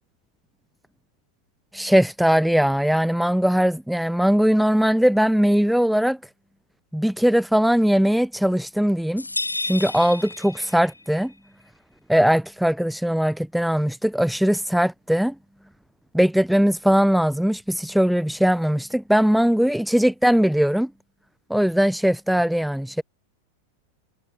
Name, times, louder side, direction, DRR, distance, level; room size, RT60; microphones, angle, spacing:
voice 1, 1.7-6.2 6.9-9.3 9.6-11.3 12.1-15.4 16.1-20.9 21.5-23.0, equal, ahead, 0.7 m, -20 dB
sound 1, 9.2-11.1, left 2 dB, 85° left, 2.3 m, -31 dB
figure-of-eight pair, 90°, 0 cm